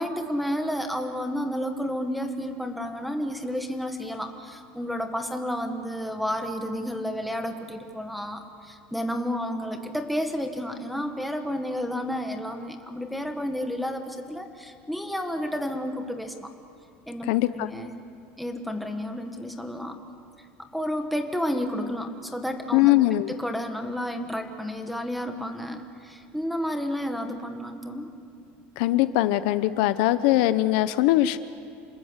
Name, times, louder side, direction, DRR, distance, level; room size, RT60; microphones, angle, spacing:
voice 1, 0.0-16.5 17.1-17.9 18.4-20.0 20.7-22.9 23.3-28.1, equal, ahead, 4 dB, 1.7 m, -31 dB
voice 2, 17.2-17.7 22.7-23.3 28.8-31.4, left 15 dB, 70° left, 13 dB, 0.8 m, -21 dB
28.5 x 20.5 x 8.1 m, 2.4 s
cardioid pair, 160°, 5 cm